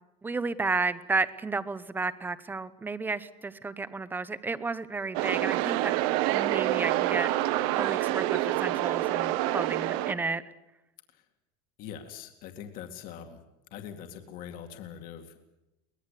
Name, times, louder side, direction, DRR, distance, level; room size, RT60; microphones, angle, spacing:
voice 1, 0.2-5.9 6.3-10.4, right 3 dB, 10° right, 15 dB, 0.9 m, -32 dB
sound 1, 5.1-10.1, right 15 dB, 65° right, 1.4 m, -27 dB
voice 2, 11.8-13.4 13.7-15.5, left 8 dB, 45° left, 5 dB, 2.3 m, -43 dB
23.5 x 19.0 x 8.4 m, 0.92 s
cardioid pair, 160°, 20 cm